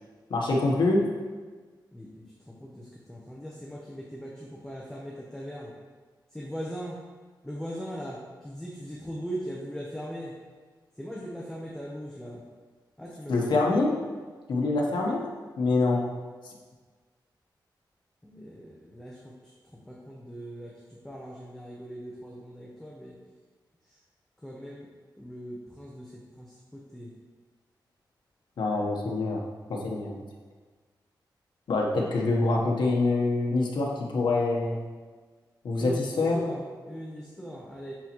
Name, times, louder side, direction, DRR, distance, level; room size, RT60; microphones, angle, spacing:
voice 1, 0.3-1.0 13.3-13.9 14.5-15.3 15.6-16.1 28.6-29.4 29.7-30.2 31.7-34.8 35.6-36.4, left 2 dB, 85° left, -1 dB, 1.1 m, -25 dB
voice 2, 1.9-5.7 6.3-7.0 7.4-10.3 11.0-12.4 13.0-13.7 18.2-19.3 19.9-23.2 23.9-24.0 24.4-26.1 26.4-27.1 35.8-37.9, equal, 5° left, -4 dB, 0.8 m, -40 dB
10.0 x 4.0 x 3.1 m, 1.4 s
wide cardioid pair, 150°, 8 cm